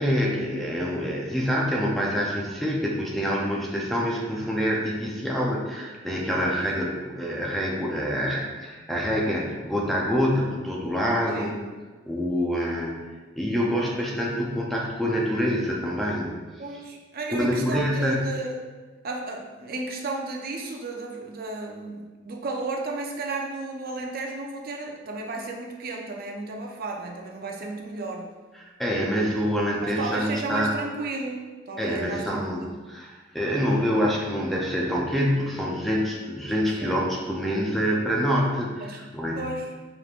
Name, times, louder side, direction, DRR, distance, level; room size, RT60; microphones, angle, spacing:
voice 1, 0.0-11.5 12.1-13.0 13.4-16.4 17.3-18.4 28.6-30.7 31.8-32.6 32.9-33.1 33.3-38.7 39.1-39.4, equal, ahead, -3 dB, 0.5 m, -26 dB
voice 2, 6.4-6.8 11.3-11.6 16.6-18.6 19.0-28.3 29.8-32.6 36.4-36.5 36.8-37.0 38.8-39.0 39.3-39.7, right 2 dB, 50° right, 1 dB, 0.6 m, -33 dB
5.1 x 3.0 x 2.5 m, 1.3 s
head